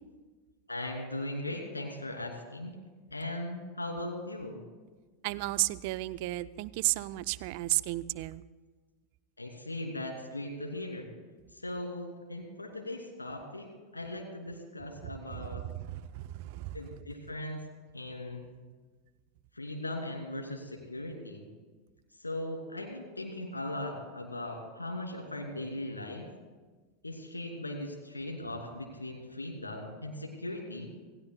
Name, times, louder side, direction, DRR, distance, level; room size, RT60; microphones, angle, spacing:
voice 1, 0.7-2.7 3.1-4.6 9.4-11.1 11.5-15.6 16.7-17.6 17.9-18.5 19.5-21.5 22.1-26.3 27.0-30.9, left 1 dB, 90° left, 1 dB, 2.8 m, -39 dB
voice 2, 5.2-8.4 15.0-16.8, right 19 dB, 55° right, 17 dB, 0.5 m, -33 dB
27.0 x 17.0 x 2.3 m, 1.3 s
figure-of-eight pair, 85°, 0 cm